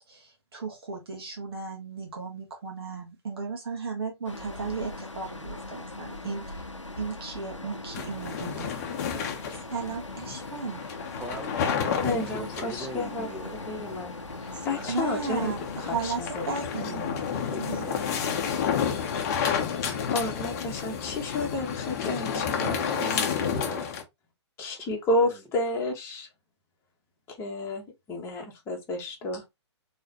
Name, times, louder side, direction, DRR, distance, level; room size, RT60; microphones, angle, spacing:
voice 1, 0.1-6.6 7.0-8.7 9.7-10.8 14.9-17.2 17.6-17.9, right 4 dB, 55° right, 1.4 m, -35 dB
sound 1, 4.2-23.1, left 2 dB, 90° left, 0.7 m, -41 dB
sound 2, 7.9-24.0, left 7 dB, 35° left, 0.8 m, -31 dB
voice 2, 11.2-13.5 14.5-15.6 17.3-18.2 22.3-23.9 24.7-25.4, right 3 dB, 5° right, 0.6 m, -41 dB
voice 3, 12.0-13.3 13.7-14.1 14.6-15.5 15.9-16.4 16.7-17.0 19.7-23.1 24.6-26.3 27.4-29.4, left 2 dB, 15° left, 1.2 m, -31 dB
3.8 x 3.2 x 2.9 m
figure-of-eight pair, 125°, 15 cm